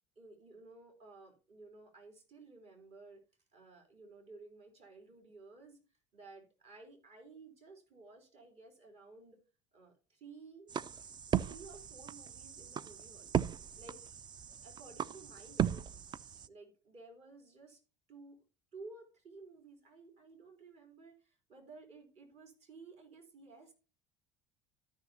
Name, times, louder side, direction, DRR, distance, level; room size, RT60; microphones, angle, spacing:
voice 1, 0.2-3.2 3.5-5.8 6.1-9.4 9.7-10.8 11.3-13.3 13.8-14.0 14.6-16.0 16.5-17.8 18.1-18.4 18.7-23.7, right 3 dB, 45° right, 3 dB, 3.5 m, -55 dB
sound 1, 10.7-16.5, right 8 dB, 30° right, 0.4 m, -37 dB
13.5 x 6.2 x 2.8 m, 0.33 s
hypercardioid pair, 70°, 15 cm